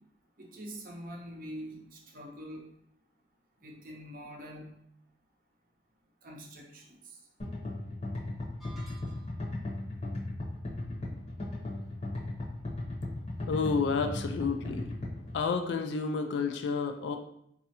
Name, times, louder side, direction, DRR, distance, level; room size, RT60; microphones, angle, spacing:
voice 1, 0.4-2.7 3.6-4.8 6.2-6.9, equal, 45° right, -1 dB, 0.6 m, -44 dB
sound 1, 7.4-15.4, left 2 dB, 35° left, 0.8 m, -36 dB
sound 2, 8.6-9.6, right 3 dB, ahead, 0.5 m, -54 dB
voice 2, 13.5-14.9 15.3-17.2, left 4 dB, 70° left, 6 dB, 0.3 m, -30 dB
4.1 x 2.4 x 2.8 m, 0.75 s
head